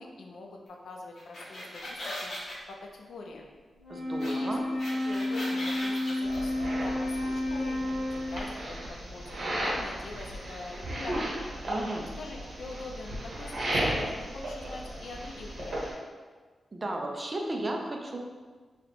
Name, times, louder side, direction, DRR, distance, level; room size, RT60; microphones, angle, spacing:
voice 1, 0.0-2.3 2.7-3.5 4.2-4.6 4.9-8.8 9.1-11.4 12.2-16.0, left 3 dB, 85° left, 1 dB, 0.5 m, -44 dB
sound 1, 1.1-2.5 4.2-4.3 4.6-6.4, left 1 dB, 55° left, 0.9 m, -38 dB
Wind instrument woodwind instrument, 3.8-8.6, left 1 dB, 35° left, 1.1 m, -31 dB
voice 2, 3.9-4.6 11.7-12.1 16.7-18.2, right 1 dB, 25° right, 1 dB, 0.4 m, -34 dB
sound 2, 6.2-15.9, right 1 dB, 65° right, 1.0 m, -35 dB
3.2 x 2.8 x 4.1 m, 1.4 s
wide cardioid pair, 175°, 0 cm